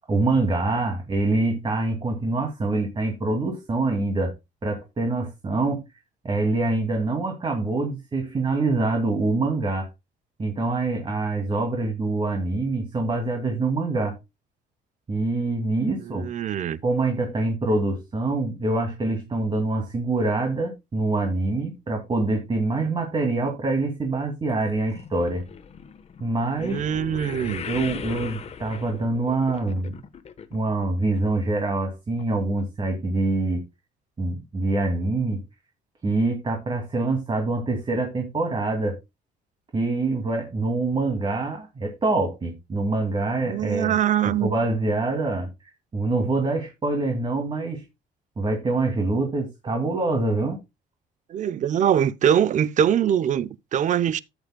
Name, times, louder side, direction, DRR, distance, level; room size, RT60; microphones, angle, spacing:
voice 1, 0.1-4.3 4.6-5.8 6.2-9.9 10.4-14.2 15.1-16.2 16.8-25.4 26.2-26.9 27.6-30.0 30.5-33.6 34.2-35.4 36.0-39.0 39.7-44.0 44.2-47.8 48.4-50.6, right 2 dB, 30° right, 2.4 m, -25 dB
voice 2, 16.0-16.8 26.6-27.6 43.5-44.5 51.3-54.2, right 9 dB, 45° right, 0.6 m, -23 dB
sound 1, 24.5-30.9 31.1-31.6 32.2-32.3 32.6-32.7, left 7 dB, 40° left, 1.1 m, -39 dB
13.0 x 9.0 x 2.2 m
cardioid pair, 110°, 17 cm